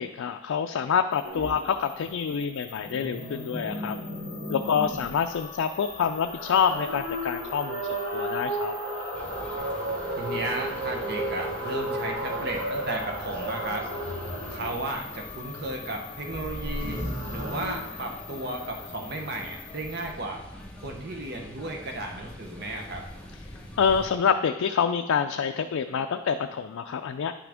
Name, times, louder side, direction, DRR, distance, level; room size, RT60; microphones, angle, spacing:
voice 1, 0.0-4.0 4.5-8.7 23.8-27.3, left 7 dB, 85° left, 6 dB, 0.4 m, -27 dB
sound 1, 1.1-20.1, left 7 dB, 25° left, 0.6 m, -46 dB
sound 2, 1.2-1.6 2.7-5.2 5.9-14.9 16.3-17.8, right 1 dB, 90° right, 1.8 m, -33 dB
sound 3, 9.1-24.1, left 1 dB, 5° left, 1.0 m, -45 dB
voice 2, 10.2-13.9 14.5-20.4 20.8-23.0, right 2 dB, 50° right, 2 dB, 0.8 m, -34 dB
10.0 x 6.1 x 3.5 m, 1.0 s
head